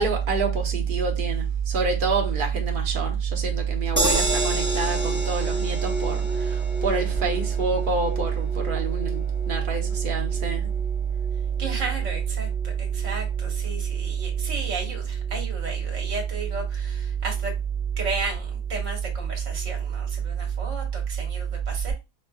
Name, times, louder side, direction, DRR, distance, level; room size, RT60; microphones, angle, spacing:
voice 1, 0.0-10.6, right 5 dB, 40° right, 1.0 m, -25 dB
sound 1, 4.0-16.2 16.6-16.7 17.0-17.1, right 1 dB, 15° right, 0.4 m, -32 dB
voice 2, 11.6-17.5 18.0-21.9, right 3 dB, 65° right, 1.6 m, -34 dB
5.4 x 2.4 x 2.3 m
omnidirectional pair, 1.4 m